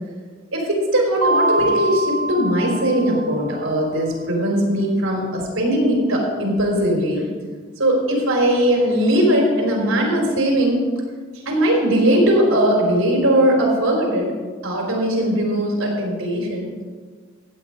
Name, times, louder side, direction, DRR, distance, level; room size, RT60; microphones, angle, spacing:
voice 1, 0.5-7.3 7.8-10.9 11.5-14.3 14.6-16.8, equal, 85° right, 0 dB, 4.0 m, -19 dB
Mallet percussion, 1.2-3.8, right 2 dB, 65° right, 0.6 m, -24 dB
15.0 x 8.8 x 5.0 m, 1.6 s
head